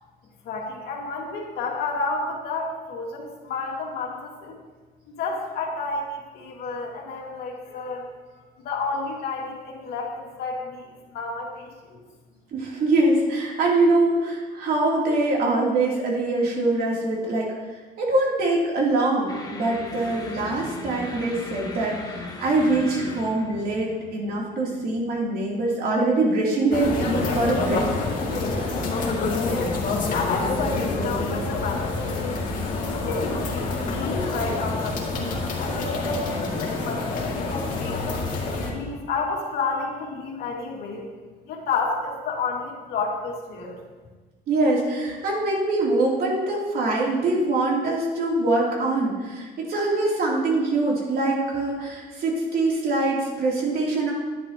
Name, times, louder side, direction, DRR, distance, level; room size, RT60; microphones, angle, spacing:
voice 1, 0.4-4.6 5.1-8.1 8.4-12.0 29.4-29.8 30.1-32.4 32.9-35.0 35.6-38.0 38.7-41.1 41.4-43.8, left 4 dB, 70° left, -1 dB, 2.1 m, -31 dB
voice 2, 12.5-17.5 18.0-27.9 28.5-28.7 44.5-54.1, right 2 dB, 65° right, -3 dB, 3.0 m, -23 dB
sound 1, 19.3-25.7, left 2 dB, 20° left, 1.4 m, -39 dB
sound 2, 26.7-38.7, left 3 dB, 50° left, 2.3 m, -27 dB
10.5 x 10.5 x 2.9 m, 1.3 s
cardioid pair, 110°, 17 cm